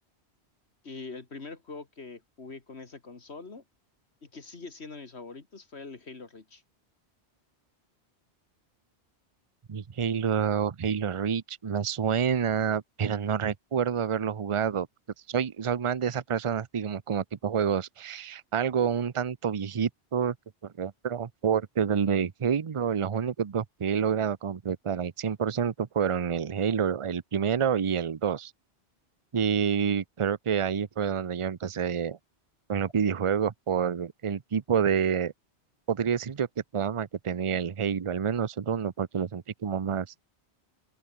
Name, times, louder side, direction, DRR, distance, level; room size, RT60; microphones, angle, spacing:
voice 1, 0.8-3.6 4.2-6.6, left 4 dB, 70° left, 2.5 m, -43 dB
voice 2, 9.7-14.9 15.3-20.3 20.6-28.5 29.3-32.2 32.7-35.3 35.9-36.5 36.7-40.1, right 7 dB, 35° right, 0.6 m, -28 dB
open air
omnidirectional pair, 1.1 m